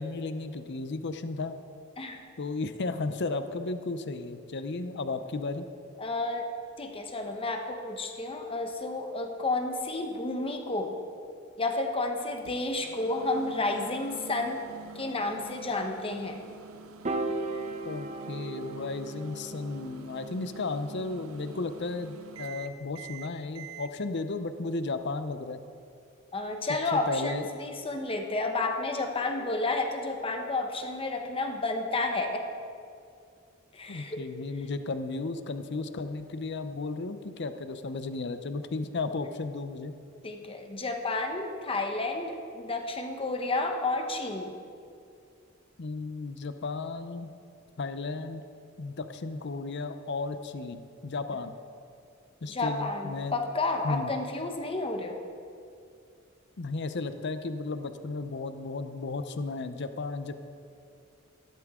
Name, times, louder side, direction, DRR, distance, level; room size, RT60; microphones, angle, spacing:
voice 1, 0.0-1.6 2.4-5.7 17.8-25.6 26.9-27.5 33.9-39.9 45.8-47.3 47.8-48.5 48.8-51.6 52.4-53.4 53.8-54.1 56.6-60.4, left 3 dB, 55° left, 10 dB, 0.6 m, -34 dB
voice 2, 6.0-6.5 6.8-11.0 11.6-14.6 14.9-16.4 26.3-32.4 33.7-34.2 40.2-44.5 52.5-55.2, left 2 dB, 25° left, 4 dB, 1.0 m, -31 dB
Microwave oven, 12.4-23.9, right 5 dB, 75° right, 0.6 m, -47 dB
Piano, 17.0-23.4, right 2 dB, 35° right, 0.8 m, -38 dB
14.5 x 13.0 x 3.7 m, 2.4 s
head